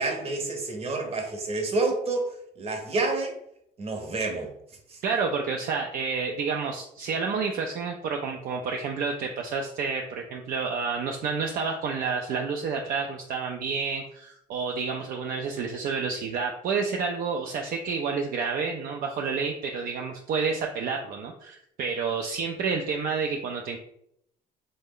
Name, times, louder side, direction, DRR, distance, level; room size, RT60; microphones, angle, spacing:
voice 1, 0.0-3.3 3.8-4.5 4.9-5.0, right 3 dB, 35° right, 3 dB, 0.8 m, -29 dB
voice 2, 5.0-23.8, right 5 dB, 55° right, 2 dB, 0.4 m, -29 dB
3.2 x 2.1 x 3.6 m, 0.73 s
cardioid pair, 110°, 17 cm